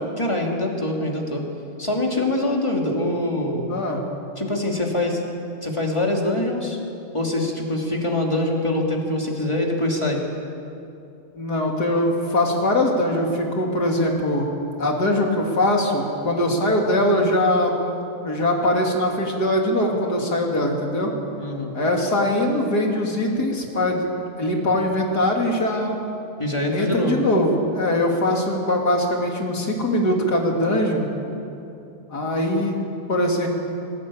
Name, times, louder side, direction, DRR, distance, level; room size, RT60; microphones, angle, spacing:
voice 1, 0.2-1.4 1.8-3.7 4.4-5.2 5.6-6.8 7.1-10.2 21.4-21.7 26.4-27.2, left 1 dB, 20° left, 0 dB, 2.8 m, -24 dB
voice 2, 3.7-4.0 11.4-14.5 14.8-17.9 18.2-21.1 21.7-24.0 24.4-25.9 26.7-31.1 32.1-33.5, left 1 dB, 75° left, 0 dB, 3.4 m, -22 dB
22.5 x 17.5 x 8.8 m, 2.7 s
omnidirectional pair, 1.7 m